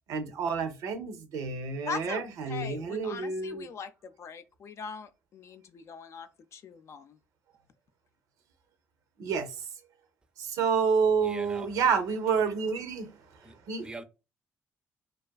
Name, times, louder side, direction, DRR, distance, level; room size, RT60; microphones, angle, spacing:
voice 1, 0.1-3.7 9.2-9.7 10.4-13.9, right 5 dB, 75° right, 0.5 m, -29 dB
voice 2, 1.9-2.2 2.5-7.2, left 6 dB, 55° left, 0.3 m, -41 dB
voice 3, 11.2-11.7 13.4-14.0, right 2 dB, 15° right, 0.4 m, -44 dB
2.4 x 2.3 x 2.2 m
supercardioid pair, 65°, 6 cm